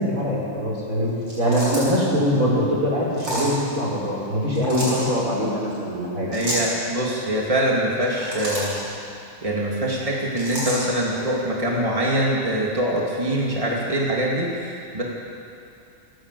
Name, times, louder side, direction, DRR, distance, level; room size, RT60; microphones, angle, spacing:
voice 1, 0.0-6.3, equal, 80° right, -4 dB, 5.3 m, -23 dB
sound 1, 1.2-2.0 3.1-3.5 4.5-5.1 6.3-6.7 8.0-8.8 10.4-10.8, equal, 55° right, 7.8 m, -29 dB
voice 2, 6.3-8.8 9.4-15.0, right 1 dB, 25° right, -3 dB, 2.8 m, -24 dB
29.0 x 11.0 x 8.5 m, 2.6 s
omnidirectional pair, 1.4 m